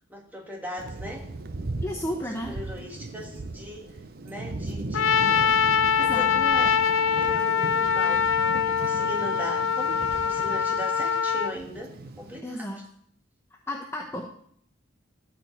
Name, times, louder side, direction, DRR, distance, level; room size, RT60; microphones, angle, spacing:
voice 1, 0.1-1.3 2.2-3.9 4.2-5.5 6.0-6.8 7.1-8.2 8.5-11.9 12.2-12.7, equal, 10° right, 0 dB, 1.9 m, -38 dB
Thunder, 0.8-12.4, right 2 dB, 50° right, 0.7 m, -38 dB
voice 2, 1.8-2.5 6.0-6.3 12.4-12.8 13.7-14.3, equal, 15° left, 2 dB, 0.8 m, -32 dB
Trumpet, 4.9-11.5, left 7 dB, 90° left, 0.6 m, -23 dB
13.5 x 4.8 x 7.9 m, 0.66 s
head